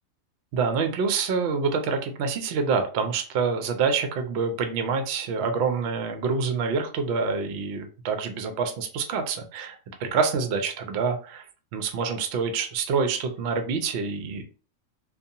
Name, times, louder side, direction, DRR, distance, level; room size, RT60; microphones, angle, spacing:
voice 1, 0.5-11.4 11.7-14.4, right 5 dB, 65° right, 7 dB, 0.7 m, -26 dB
2.6 x 2.3 x 2.7 m, 0.38 s
omnidirectional pair, 1.4 m